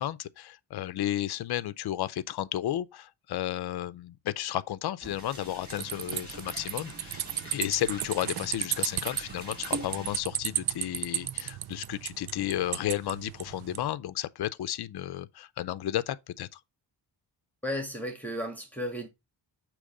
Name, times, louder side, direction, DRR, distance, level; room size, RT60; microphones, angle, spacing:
voice 1, 0.0-7.2 7.5-16.6, left 13 dB, 65° left, 0.5 m, -33 dB
sound 1, 5.0-10.2, right 2 dB, 20° right, 3.4 m, -44 dB
sound 2, 5.7-13.8, right 11 dB, 65° right, 0.5 m, -34 dB
voice 2, 17.6-19.1, equal, 5° left, 1.6 m, -34 dB
6.4 x 3.1 x 4.8 m
wide cardioid pair, 140°, 42 cm